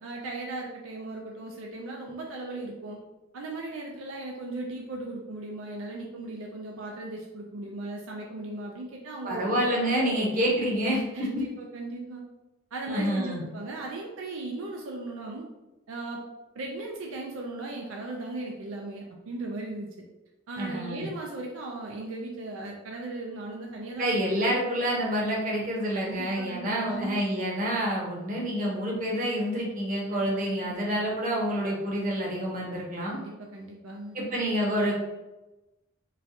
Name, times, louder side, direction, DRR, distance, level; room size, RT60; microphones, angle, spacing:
voice 1, 0.0-3.0 3.3-10.2 11.1-12.2 12.7-15.5 15.9-16.2 16.6-19.9 20.5-24.2 25.9-27.2 30.1-30.3 30.6-30.9 33.0-34.2, right 2 dB, 75° right, 0 dB, 0.4 m, -37 dB
voice 2, 9.2-11.0 12.9-13.4 20.6-21.1 24.0-33.2 34.1-34.9, equal, 40° right, -3 dB, 0.8 m, -28 dB
3.9 x 2.2 x 2.6 m, 1.0 s
head